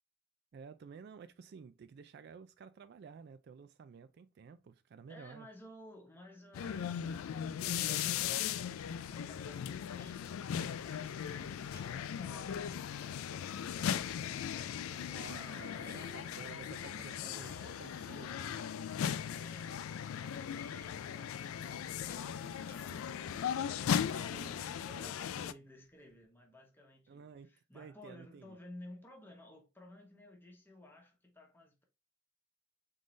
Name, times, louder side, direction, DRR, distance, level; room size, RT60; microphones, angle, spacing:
voice 1, 0.5-5.5 15.2-18.6 27.1-27.5 27.7-28.6, right 6 dB, 50° right, 0.3 m, -53 dB
voice 2, 5.1-10.4 10.8-14.8 15.3-16.2 17.1-18.0 19.3-19.7 20.2-31.8, left 1 dB, 10° left, 1.0 m, -56 dB
sound 1, 6.5-25.5, left 8 dB, 85° left, 0.3 m, -38 dB
sound 2, 11.7-19.5 19.9-20.2 21.4-24.0 24.3-24.5 24.8-25.1 25.6-26.2, left 3 dB, 45° left, 0.9 m, -64 dB
Chuckle chortle, 14.6-18.4, right 4 dB, 35° right, 0.7 m, -59 dB
3.9 x 3.7 x 3.1 m
head